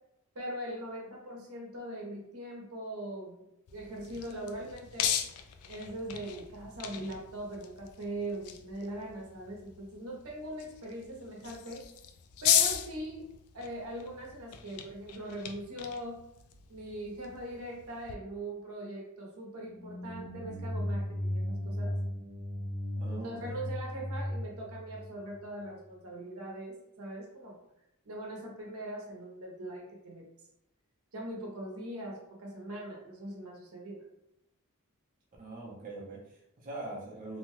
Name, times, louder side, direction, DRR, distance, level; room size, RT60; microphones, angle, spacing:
voice 1, 0.3-3.5 3.7-5.2 5.7-11.9 12.4-13.3 13.5-16.2 16.7-22.0 23.1-27.6 28.0-30.3 31.1-34.1, right 1 dB, 85° right, -2 dB, 0.8 m, -41 dB
sound 1, 3.7-18.1, left 10 dB, 80° left, 0.3 m, -36 dB
sound 2, 19.7-25.7, left 1 dB, 20° left, 0.6 m, -36 dB
voice 2, 23.0-23.5 35.4-37.4, right 2 dB, 40° right, -3 dB, 0.6 m, -42 dB
2.6 x 2.2 x 3.0 m, 0.84 s
head